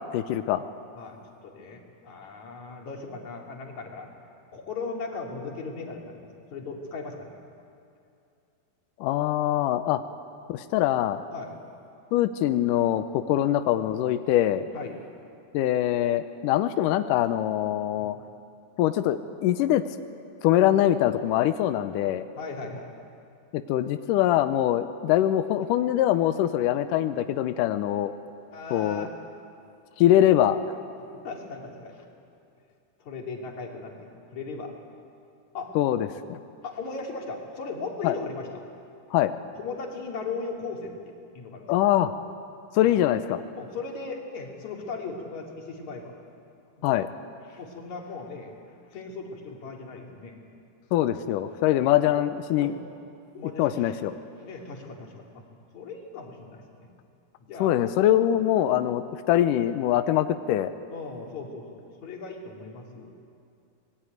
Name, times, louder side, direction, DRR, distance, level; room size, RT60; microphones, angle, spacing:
voice 1, 0.1-0.6 9.0-10.0 10.5-11.2 12.1-14.7 15.5-18.2 18.8-19.8 20.4-22.2 23.5-28.1 28.7-29.1 30.0-30.6 35.8-36.4 38.0-38.2 39.1-39.3 41.7-42.1 42.7-43.4 46.8-47.1 50.9-52.7 53.4-54.1 57.6-60.7, left 12 dB, 85° left, 10 dB, 1.9 m, -23 dB
voice 2, 1.0-4.1 4.5-7.3 11.3-11.5 14.7-15.0 18.0-18.2 22.4-23.0 28.5-29.1 31.0-32.1 33.0-33.9 34.3-34.7 35.5-35.7 36.6-38.5 39.6-41.8 42.7-42.9 43.5-46.1 46.8-47.0 47.5-48.5 48.9-50.3 51.4-51.5 52.5-52.8 53.4-53.9 54.4-55.4 55.7-56.9 57.4-57.8 58.7-58.8 60.9-63.1, left 4 dB, 50° left, 0 dB, 3.8 m, -38 dB
26.0 x 19.5 x 9.3 m, 2.5 s
omnidirectional pair, 4.6 m